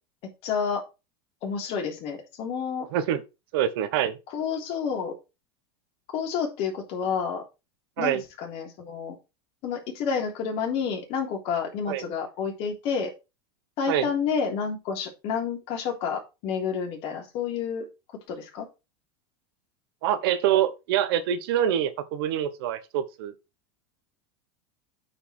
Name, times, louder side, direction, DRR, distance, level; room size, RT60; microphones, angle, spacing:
voice 1, 0.2-0.8 1.4-2.9 4.3-5.2 6.1-7.4 8.0-9.2 9.6-13.1 13.8-17.9 18.3-18.7, left 6 dB, 55° left, 3.5 m, -29 dB
voice 2, 3.5-4.2 8.0-8.2 11.9-12.1 13.9-14.1 20.0-23.3, right 10 dB, 70° right, 1.3 m, -25 dB
8.8 x 5.2 x 4.6 m
supercardioid pair, 125°, 13 cm